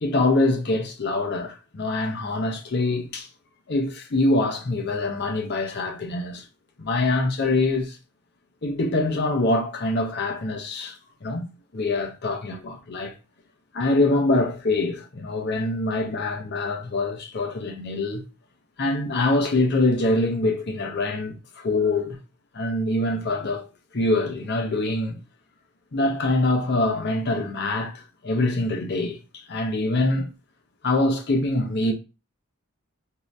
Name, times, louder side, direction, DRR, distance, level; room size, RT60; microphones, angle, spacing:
voice 1, 0.0-3.3 3.7-6.4 6.8-8.0 8.6-11.5 11.7-13.1 13.7-18.2 18.8-22.2 22.5-23.7 23.9-25.2 25.9-29.2 29.5-30.3 30.8-31.9, left 2 dB, 50° left, 0.7 m, -24 dB
2.8 x 2.5 x 3.1 m
head